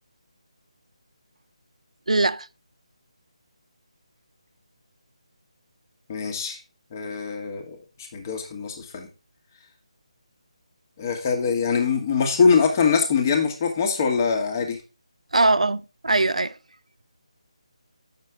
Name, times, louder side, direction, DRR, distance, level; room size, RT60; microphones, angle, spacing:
voice 1, 2.1-2.5 15.3-16.6, right 2 dB, 80° right, 0.4 m, -21 dB
voice 2, 6.1-6.6 6.9-7.8 8.1-9.1 11.0-14.8, left 5 dB, 30° left, 1.6 m, -23 dB
7.8 x 6.6 x 3.5 m
figure-of-eight pair, 155°, 4 cm